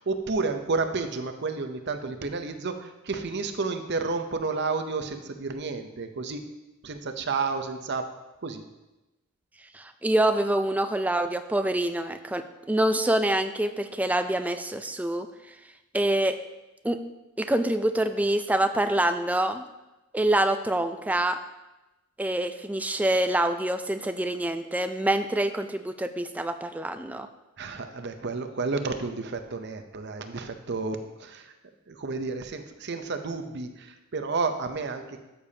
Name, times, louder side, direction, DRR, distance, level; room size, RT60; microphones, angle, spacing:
voice 1, 0.0-6.5 6.8-8.1 8.4-8.6 27.6-31.5 31.9-35.2, right 4 dB, 55° right, 7 dB, 0.7 m, -31 dB
voice 2, 9.7-15.3 15.9-16.4 16.8-17.0 17.4-19.6 20.1-21.4 22.2-27.3, right 1 dB, 5° right, 8 dB, 0.4 m, -26 dB
13.5 x 6.9 x 2.8 m, 1.0 s
head